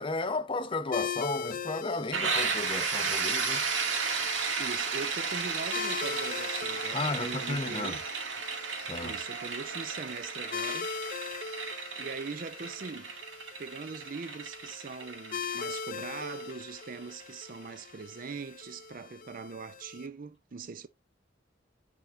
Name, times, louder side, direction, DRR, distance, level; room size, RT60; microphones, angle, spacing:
voice 1, 0.0-3.6 6.9-8.0 8.9-9.2, left 3 dB, 30° left, 0.8 m, -34 dB
sound 1, 0.9-20.1, left 6 dB, 45° left, 0.4 m, -41 dB
sound 2, 2.1-17.7, right 5 dB, 90° right, 2.2 m, -34 dB
voice 2, 4.6-8.0 9.0-10.9 12.0-13.1 13.6-20.9, right 4 dB, 45° right, 0.5 m, -41 dB
10.5 x 4.5 x 2.5 m
head